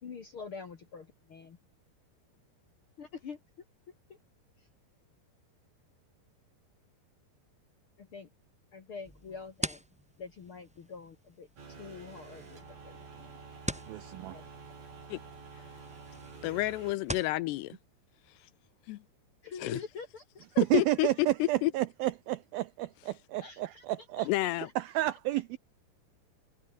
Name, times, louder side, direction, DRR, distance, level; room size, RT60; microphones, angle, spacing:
voice 1, 0.0-1.6 3.0-3.4 4.1-4.2 4.6-4.7 8.0-8.3 8.7-9.8 10.2-13.3 14.3-14.5 19.4-20.5 23.4-24.7 25.1-25.2, left 5 dB, 55° left, 1.4 m, -46 dB
sound 1, 9.0-17.4, equal, ahead, 5.5 m, -44 dB
sound 2, 11.6-16.9, right 4 dB, 55° right, 8.0 m, -49 dB
voice 2, 13.9-14.4 20.6-24.3 24.8-25.6, right 16 dB, 85° right, 2.1 m, -31 dB
voice 3, 16.4-17.8 18.9-19.0 19.6-19.8 20.6-21.7 24.3-24.7, left 18 dB, 80° left, 2.7 m, -30 dB
omnidirectional pair, 5.2 m